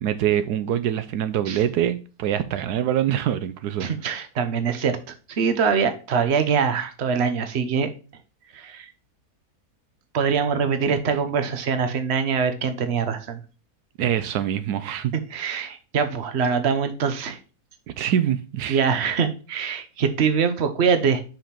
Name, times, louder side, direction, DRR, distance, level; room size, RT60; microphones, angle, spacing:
voice 1, 0.0-3.9 10.8-10.9 14.0-15.1 18.0-18.8, right 10 dB, 85° right, 1.2 m, -24 dB
voice 2, 3.8-5.0 5.3-7.9 8.5-8.9 10.1-13.4 15.1-17.4 18.7-21.2, right 6 dB, 45° right, 1.1 m, -23 dB
5.9 x 5.2 x 5.7 m
omnidirectional pair, 1.7 m